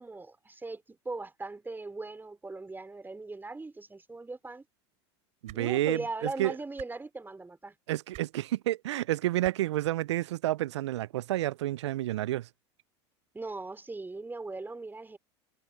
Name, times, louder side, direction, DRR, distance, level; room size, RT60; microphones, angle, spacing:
voice 1, 0.0-4.6 5.5-7.8 13.3-15.2, right 3 dB, 15° right, 3.5 m, -39 dB
sound 1, 5.4-5.6 6.7-6.9 8.1-8.3 9.4-9.5 10.8-10.9, right 17 dB, 55° right, 3.7 m, -47 dB
voice 2, 5.4-6.6 7.9-12.5, right 15 dB, 85° right, 0.4 m, -30 dB
hypercardioid pair, 85°, 14 cm